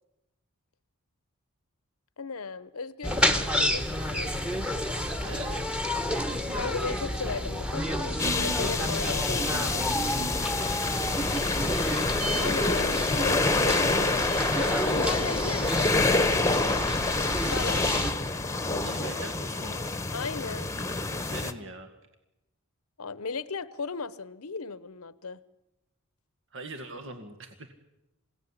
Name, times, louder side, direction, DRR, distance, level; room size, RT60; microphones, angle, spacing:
voice 1, 2.2-3.8 4.1-4.3 6.5-9.9 12.4-16.9 17.5-17.9 18.7-19.3 20.1-20.7 23.0-25.4, left 4 dB, 80° left, 17 dB, 0.9 m, -36 dB
sound 1, 3.0-18.1, equal, 5° right, 1.5 m, -30 dB
voice 2, 5.2-5.7 17.8-18.1 18.8-19.9 20.8-21.9 26.5-27.7, right 2 dB, 60° right, 7 dB, 2.1 m, -42 dB
sound 2, 8.2-21.5, left 3 dB, 15° left, 1.2 m, -27 dB
27.5 x 17.0 x 9.9 m, 0.95 s
head